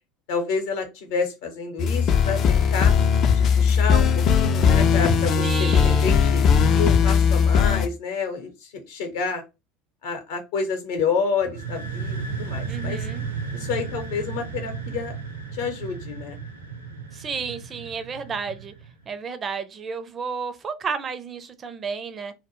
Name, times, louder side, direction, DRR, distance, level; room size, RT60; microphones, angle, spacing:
voice 1, 0.3-2.9 3.3-6.4 6.7-9.4 10.0-13.0 13.5-15.2 15.5-16.4, left 5 dB, 65° left, 0.7 m, -29 dB
sound 1, 1.8-7.9, left 6 dB, 45° left, 0.3 m, -19 dB
voice 2, 5.4-6.3 12.7-13.3 17.1-18.7 19.1-22.3, right 5 dB, 30° right, 0.4 m, -32 dB
sound 2, 11.4-19.0, right 5 dB, 80° right, 0.6 m, -34 dB
2.1 x 2.1 x 3.0 m
figure-of-eight pair, 70°, 0 cm